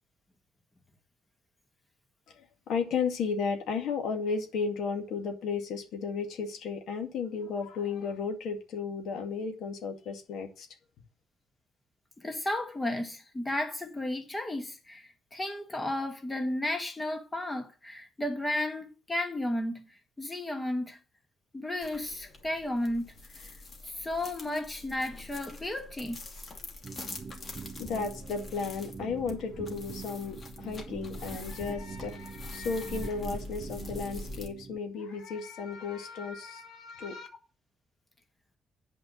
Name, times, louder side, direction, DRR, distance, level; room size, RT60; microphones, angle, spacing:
voice 1, 2.3-10.7 27.8-37.3, left 5 dB, 80° left, 2.1 m, -34 dB
voice 2, 12.2-21.0 21.5-23.1 23.8-26.2, left 1 dB, 15° left, 2.4 m, -33 dB
sound 1, 21.8-34.5, left 2 dB, 45° left, 2.6 m, -44 dB
sound 2, 26.8-34.8, right 5 dB, 35° right, 0.6 m, -44 dB
8.6 x 5.3 x 7.2 m
cardioid pair, 90°, 0 cm